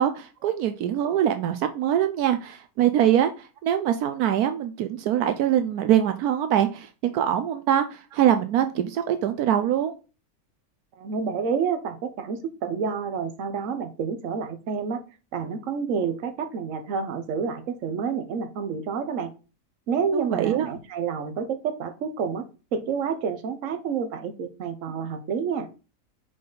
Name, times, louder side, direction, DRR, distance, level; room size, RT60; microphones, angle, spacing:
voice 1, 0.0-9.9 20.1-20.7, right 10 dB, 80° right, 9 dB, 1.1 m, -23 dB
voice 2, 11.0-15.0 15.3-19.3 19.9-22.4 22.7-25.7, right 6 dB, 60° right, 9 dB, 1.2 m, -29 dB
5.8 x 5.2 x 3.9 m, 0.33 s
omnidirectional pair, 1.6 m